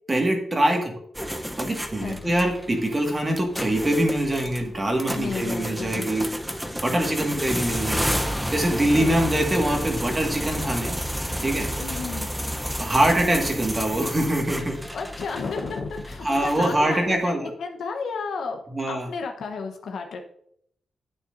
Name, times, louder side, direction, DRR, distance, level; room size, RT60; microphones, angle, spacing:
voice 1, 0.1-0.9 1.6-6.3 6.8-8.2 8.5-11.0 11.4-11.7 12.8-14.8 16.2-17.5 18.7-19.1, right 1 dB, 25° right, 2 dB, 1.8 m, -24 dB
sound 1, 1.1-17.1, equal, 5° right, 0.7 m, -31 dB
voice 2, 2.0-2.3 5.1-6.1 8.9-9.5 11.8-12.3 14.9-17.3 17.6-18.6 18.9-20.2, left 4 dB, 80° left, 3 dB, 1.0 m, -32 dB
9.7 x 8.0 x 2.6 m, 0.69 s
cardioid pair, 85°, 0 cm